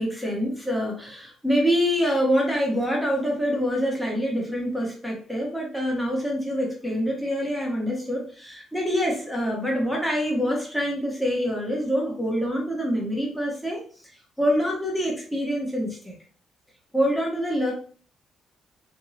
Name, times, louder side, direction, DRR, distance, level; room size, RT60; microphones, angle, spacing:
voice 1, 0.0-13.8 14.4-16.2 16.9-17.7, equal, 5° left, -2 dB, 1.2 m, -25 dB
2.9 x 2.7 x 2.8 m, 0.43 s
cardioid pair, 90°, 0 cm